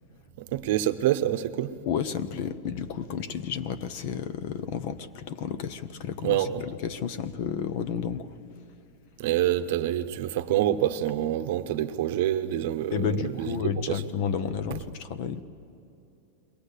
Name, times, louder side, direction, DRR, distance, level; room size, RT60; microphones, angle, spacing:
voice 1, 0.4-1.7 6.2-6.6 9.2-14.0, right 12 dB, 55° right, 0.9 m, -27 dB
voice 2, 1.8-8.3 12.9-15.4, left 7 dB, 45° left, 0.8 m, -31 dB
22.5 x 18.0 x 8.3 m
supercardioid pair, 165°, 0 cm